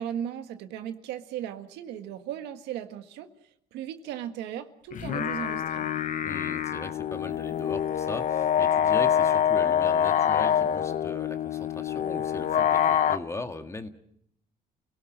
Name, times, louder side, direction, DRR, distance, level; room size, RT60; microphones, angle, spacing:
voice 1, 0.0-3.3 3.7-5.8, right 10 dB, 90° right, 7 dB, 1.7 m, -36 dB
sound 1, 4.9-13.2, left 9 dB, 50° left, 0.9 m, -25 dB
voice 2, 6.2-13.9, left 2 dB, 15° left, 7 dB, 1.8 m, -39 dB
30.0 x 17.5 x 6.2 m, 0.70 s
cardioid pair, 110°, 17 cm